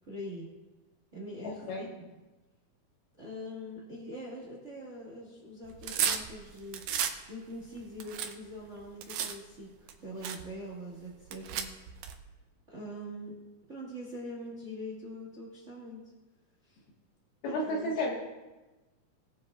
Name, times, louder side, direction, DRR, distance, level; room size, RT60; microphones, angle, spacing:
voice 1, 0.0-0.5 1.1-2.2 3.1-6.9 7.3-11.7 12.7-13.3 13.7-16.0 16.6-16.8 17.4-18.0, equal, 35° right, -4 dB, 1.2 m, -43 dB
voice 2, 1.4-1.9 17.4-18.1, left 1 dB, 80° left, -2 dB, 3.6 m, -32 dB
sound 1, 5.7-7.2 7.6-9.3 9.9-10.0 10.2-10.4 11.2-12.2, right 8 dB, 80° right, 1.7 m, -33 dB
20.0 x 7.3 x 2.5 m, 1.1 s
omnidirectional pair, 4.3 m